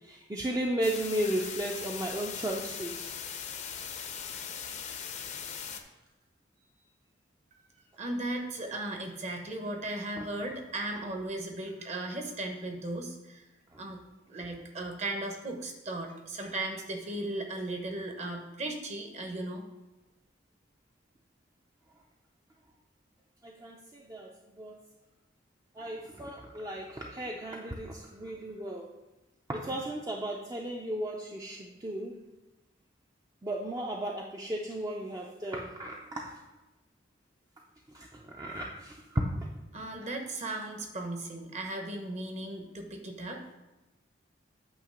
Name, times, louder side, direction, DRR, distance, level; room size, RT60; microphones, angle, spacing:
voice 1, 0.1-3.1 10.2-10.3 23.4-24.3 24.6-24.8 25.8-28.9 29.5-32.2 33.4-36.3 37.9-39.4, right 1 dB, 20° right, -1 dB, 0.5 m, -35 dB
sound 1, 0.8-5.8, left 7 dB, 40° left, 0.6 m, -39 dB
voice 2, 8.0-13.4 13.8-14.0 14.3-19.7 39.7-43.5, right 2 dB, 35° right, 3 dB, 1.0 m, -36 dB
8.7 x 2.9 x 6.4 m, 1.1 s
head